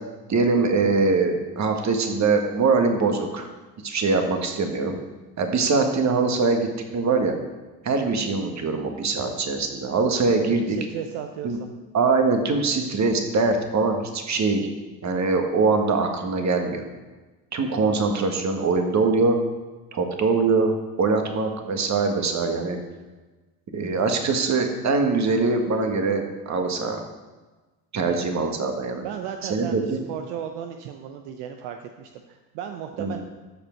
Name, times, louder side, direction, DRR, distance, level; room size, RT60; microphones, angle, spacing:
voice 1, 0.3-3.5 3.8-5.0 5.4-7.4 7.8-10.8 11.4-11.6 11.9-14.7 15.0-16.8 17.5-19.4 19.9-22.8 23.7-27.0 27.9-29.1 29.5-30.0 33.0-33.2, right 4 dB, 35° right, 4 dB, 1.7 m, -23 dB
voice 2, 10.5-11.7 27.9-28.2 29.0-33.2, right 9 dB, 65° right, 6 dB, 0.8 m, -35 dB
14.0 x 5.1 x 4.6 m, 1.2 s
hypercardioid pair, 70°, 48 cm